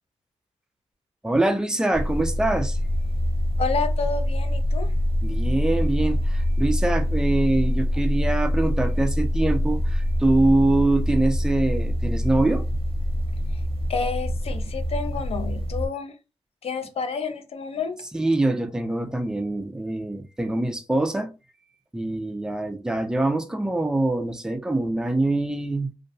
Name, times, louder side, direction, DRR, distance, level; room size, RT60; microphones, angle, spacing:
voice 1, 1.2-2.8 5.2-12.6 18.1-21.3 21.9-25.9, right 2 dB, 5° right, 0.4 m, -24 dB
sound 1, 1.9-15.9, left 1 dB, 50° right, 0.7 m, -25 dB
voice 2, 3.6-4.9 13.9-16.2 16.6-18.0, left 5 dB, 55° left, 0.4 m, -29 dB
2.6 x 2.0 x 2.6 m
wide cardioid pair, 110°, 12 cm